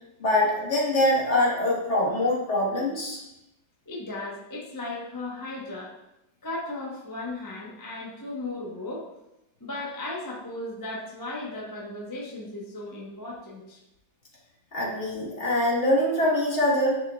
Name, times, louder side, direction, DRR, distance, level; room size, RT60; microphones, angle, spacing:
voice 1, 0.2-3.2 14.7-17.0, left 1 dB, 40° left, -4 dB, 1.5 m, -24 dB
voice 2, 3.9-5.9 6.4-9.1 9.6-13.8, left 2 dB, 15° left, -5 dB, 0.6 m, -36 dB
10.0 x 4.5 x 2.3 m, 0.90 s
omnidirectional pair, 2.1 m